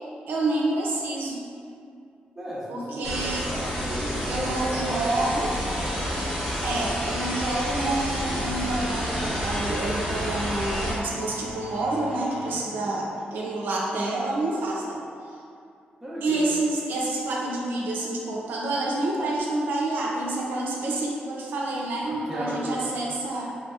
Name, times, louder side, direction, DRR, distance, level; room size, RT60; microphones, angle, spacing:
voice 1, 0.3-1.4 2.7-3.5 4.3-5.5 6.6-15.0 16.2-23.5, right 2 dB, 85° right, -3 dB, 0.4 m, -28 dB
voice 2, 2.4-5.4 5.7-6.0 12.4-12.9 16.0-16.5 22.1-22.9, right 1 dB, 10° right, -8 dB, 0.7 m, -35 dB
sound 1, 3.0-10.9, equal, 10° left, 1.1 m, -29 dB
sound 2, 4.4-12.6, equal, 45° right, 0.8 m, -40 dB
3.1 x 2.6 x 2.3 m, 2.4 s
wide cardioid pair, 135°, 3 cm